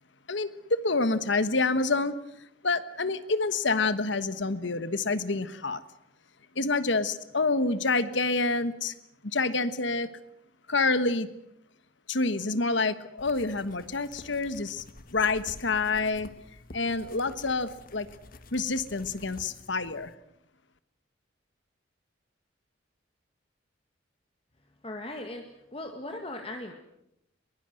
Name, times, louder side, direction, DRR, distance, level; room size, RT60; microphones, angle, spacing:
voice 1, 0.3-2.2 2.6-5.8 6.5-8.9 9.2-10.1 10.7-11.3 12.1-14.8 15.1-16.3 16.7-18.1 18.5-20.1, left 3 dB, 70° left, 13 dB, 1.4 m, -27 dB
sound 1, 13.2-20.1, left 2 dB, 45° left, 1.4 m, -50 dB
voice 2, 24.8-26.7, left 1 dB, 30° left, 4 dB, 1.8 m, -38 dB
22.5 x 21.5 x 7.8 m, 0.80 s
head